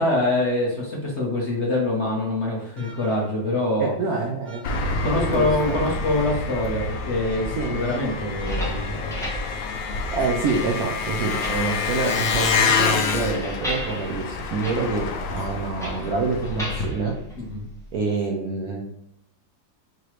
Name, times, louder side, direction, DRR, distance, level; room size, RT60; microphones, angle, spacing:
voice 1, 0.0-3.9 5.0-9.1 17.3-17.7, left 2 dB, 45° left, -3 dB, 1.0 m, -25 dB
sound 1, 2.8-3.5 4.4-6.3 7.2-10.4, right 2 dB, 35° right, 0.8 m, -44 dB
voice 2, 3.8-4.6 4.9-5.9 7.6-7.8 10.1-17.1 17.9-18.8, right 4 dB, 70° right, 0 dB, 0.9 m, -27 dB
Engine, 4.6-16.9, left 4 dB, 80° left, 1.3 m, -27 dB
sound 2, 8.3-18.0, equal, 5° left, 0.5 m, -35 dB
4.8 x 3.0 x 3.1 m, 0.79 s
omnidirectional pair, 2.0 m